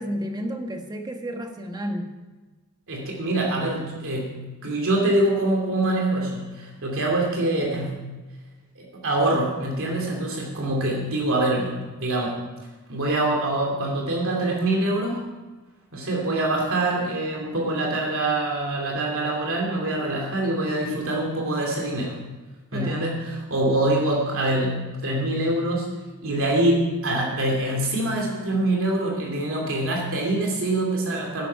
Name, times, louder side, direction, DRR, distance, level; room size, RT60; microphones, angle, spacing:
voice 1, 0.0-2.1 22.7-23.1, equal, 20° right, 4 dB, 1.4 m, -31 dB
voice 2, 2.9-7.9 8.8-12.5 12.9-15.2 15.9-22.2 22.7-25.9 26.2-31.5, right 1 dB, 65° right, -1 dB, 2.8 m, -25 dB
12.5 x 11.0 x 5.8 m, 1.2 s
head